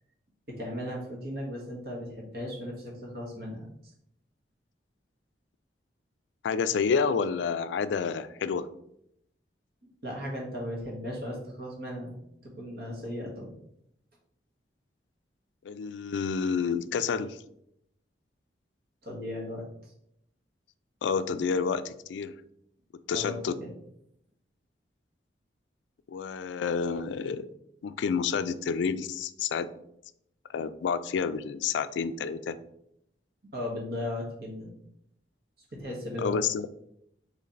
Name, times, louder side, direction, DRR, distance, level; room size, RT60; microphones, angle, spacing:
voice 1, 0.5-3.7 10.0-12.1 12.4-13.5 19.0-19.9 23.1-23.7 33.5-34.7 35.7-36.3, left 1 dB, 55° right, -2 dB, 1.3 m, -36 dB
voice 2, 6.4-8.7 15.6-17.4 21.0-22.3 23.1-23.6 26.1-27.5 27.8-29.7 30.5-32.6 36.2-36.7, left 6 dB, 85° left, 13 dB, 0.3 m, -29 dB
4.2 x 3.2 x 3.8 m, 0.76 s
head